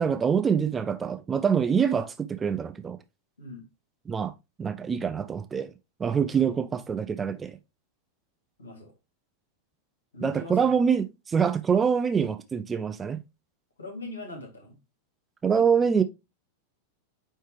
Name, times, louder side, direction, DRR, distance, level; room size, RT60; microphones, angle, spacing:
voice 1, 0.0-3.0 4.1-4.3 4.6-5.7 6.0-7.6 10.2-13.2 15.4-16.0, right 6 dB, 20° right, 0.6 m, -25 dB
voice 2, 8.6-8.9 10.1-10.8 13.8-14.8, left 2 dB, 70° left, 2.9 m, -41 dB
9.5 x 3.3 x 3.3 m
figure-of-eight pair, 90°, 0 cm